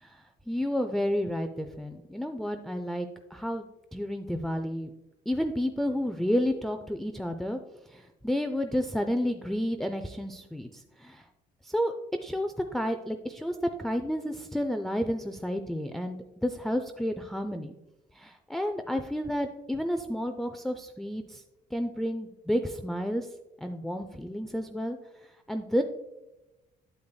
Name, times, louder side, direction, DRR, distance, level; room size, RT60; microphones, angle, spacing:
voice 1, 0.0-4.9 5.3-7.6 7.9-11.2 11.6-11.9 12.2-17.8 18.1-21.4 21.7-23.3 23.6-25.0 25.5-25.8, equal, ahead, 6 dB, 0.4 m, -31 dB
8.6 x 7.8 x 2.2 m, 1.0 s
cardioid pair, 110°, 17 cm